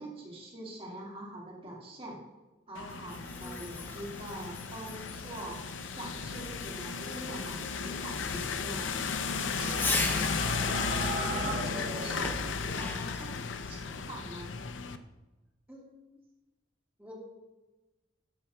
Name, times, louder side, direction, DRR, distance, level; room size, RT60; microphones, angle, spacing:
voice 1, 0.0-2.2 2.7-9.0 9.5-10.8 11.2-14.5, right 1 dB, 30° right, -3 dB, 2.6 m, -44 dB
sound 1, 2.7-15.0, left 5 dB, 85° left, 0.6 m, -35 dB
Fireworks, 2.8-10.5 12.2-13.3, left 2 dB, 10° left, 0.9 m, -40 dB
voice 2, 3.2-4.0 11.4-11.8 15.7-16.2 17.0-17.1, equal, 10° right, -4 dB, 2.7 m, -49 dB
sound 2, 8.9-12.7, right 3 dB, 45° right, 1.8 m, -39 dB
12.5 x 4.5 x 6.0 m, 1.1 s
head